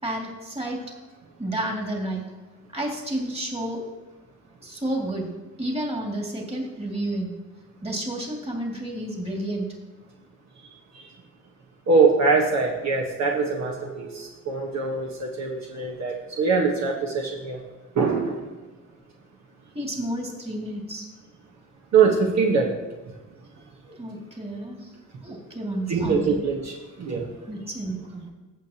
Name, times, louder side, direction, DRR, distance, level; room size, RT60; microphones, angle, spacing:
voice 1, 0.0-1.0 1.4-2.3 2.7-3.8 4.6-5.3 5.6-7.3 7.8-9.7 19.7-21.1 23.8-24.9 25.2-26.4 27.5-28.3, right 1 dB, 20° right, 0 dB, 2.4 m, -31 dB
voice 2, 11.9-17.6 17.9-18.5 21.9-22.7 25.9-27.3, right 4 dB, 60° right, 0 dB, 1.3 m, -23 dB
15.5 x 6.7 x 2.9 m, 1.2 s
cardioid pair, 90°, 30 cm